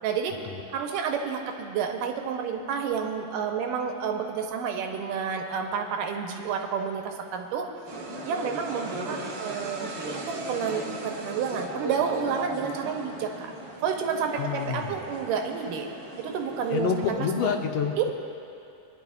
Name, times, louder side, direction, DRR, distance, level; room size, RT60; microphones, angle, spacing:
voice 1, 0.0-0.4 0.7-7.7 8.2-10.2 10.5-13.5 13.8-15.9 16.2-17.5 18.0-18.1, right 6 dB, 85° right, 3 dB, 2.5 m, -30 dB
sound 1, 7.9-17.1, right 2 dB, 65° right, 1.1 m, -37 dB
voice 2, 14.4-15.0 16.7-18.1, left 6 dB, 75° left, 4 dB, 2.3 m, -28 dB
26.0 x 10.5 x 2.4 m, 2.6 s
omnidirectional pair, 3.8 m